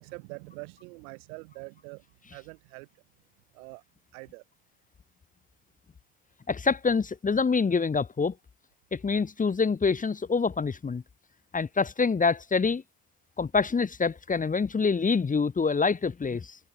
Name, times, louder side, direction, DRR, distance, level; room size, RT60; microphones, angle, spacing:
voice 1, 0.0-2.0 2.3-2.9 3.5-3.8 4.1-4.4, right 29 dB, 85° right, 6.4 m, -44 dB
voice 2, 6.5-8.3 8.9-11.0 11.5-12.8 13.4-16.6, left 5 dB, 20° left, 0.6 m, -26 dB
hypercardioid pair, 50°, 41 cm